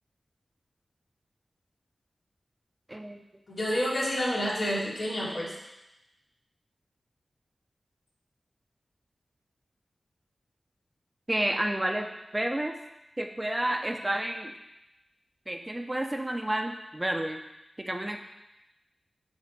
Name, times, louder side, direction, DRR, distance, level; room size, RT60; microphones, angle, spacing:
voice 1, 2.9-3.2 11.3-12.1 12.3-12.7 13.2-14.5 15.5-17.4 17.8-18.2, right 1 dB, 20° right, 4 dB, 0.8 m, -30 dB
voice 2, 3.5-5.5, equal, 70° left, -7 dB, 3.0 m, -29 dB
10.5 x 3.6 x 5.4 m, 0.92 s
cardioid pair, 55°, 0 cm